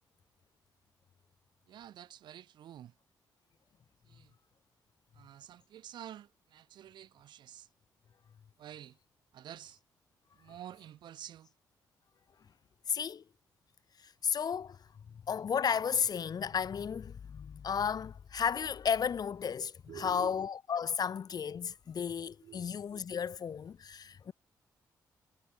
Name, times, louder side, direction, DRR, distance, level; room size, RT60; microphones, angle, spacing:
voice 1, 1.7-2.9 4.1-4.3 5.1-7.7 8.6-9.0 9.3-9.8 10.3-11.5 19.9-20.5 22.4-22.8, right 11 dB, 80° right, 4.9 m, -49 dB
voice 2, 12.9-13.2 14.0-14.8 15.3-24.3, left 7 dB, 60° left, 4.2 m, -33 dB
cardioid pair, 70°, 8 cm